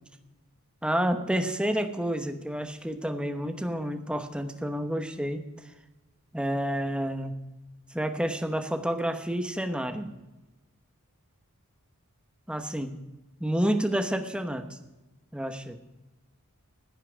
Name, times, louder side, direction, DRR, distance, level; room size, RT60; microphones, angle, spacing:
voice 1, 0.8-5.5 6.3-7.4 7.9-10.1 12.5-12.9 13.4-14.7 15.3-15.8, right 1 dB, 5° right, 6 dB, 1.0 m, -29 dB
15.0 x 5.7 x 9.7 m, 1.1 s
head